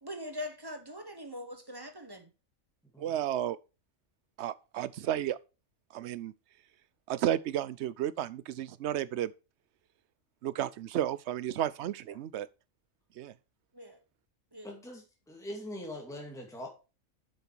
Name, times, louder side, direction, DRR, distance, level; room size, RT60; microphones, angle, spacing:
voice 1, 0.0-2.3 12.1-12.2 13.7-14.0 14.5-14.7, left 1 dB, 20° right, 1.1 m, -42 dB
voice 2, 3.0-3.6 4.4-5.4 5.9-6.3 7.1-9.3 10.4-12.5 13.2-13.3, right 11 dB, 65° right, 0.8 m, -32 dB
voice 3, 14.6-16.7, left 1 dB, ahead, 2.1 m, -42 dB
7.9 x 6.9 x 4.6 m
omnidirectional pair, 1.4 m